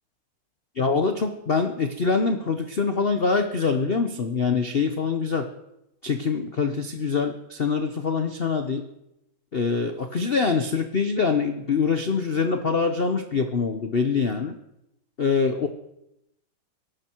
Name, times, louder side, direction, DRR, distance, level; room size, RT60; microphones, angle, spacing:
voice 1, 0.7-5.5 6.0-8.9 9.5-14.6 15.2-15.7, left 5 dB, 55° left, 7 dB, 0.6 m, -24 dB
23.0 x 11.5 x 4.6 m, 0.86 s
omnidirectional pair, 2.3 m